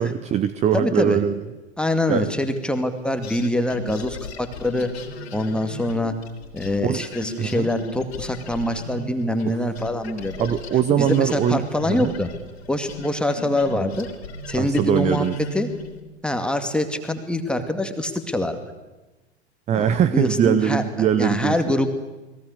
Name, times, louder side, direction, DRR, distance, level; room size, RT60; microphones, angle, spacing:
voice 1, 0.0-1.4 2.1-2.2 6.8-7.0 7.4-7.7 9.5-9.6 10.4-12.1 14.5-15.4 19.7-21.6, right 9 dB, 20° right, 14 dB, 0.8 m, -21 dB
voice 2, 0.7-1.2 1.8-4.9 5.3-6.1 6.5-10.5 11.0-12.3 12.7-14.1 14.5-15.3 15.5-15.7 16.2-18.6 19.7-21.9, left 1 dB, 5° left, 7 dB, 2.2 m, -24 dB
sound 1, 3.2-9.5 9.8-16.0, left 2 dB, 60° left, 3.3 m, -37 dB
29.5 x 21.5 x 6.7 m, 1.1 s
figure-of-eight pair, 95°, 34 cm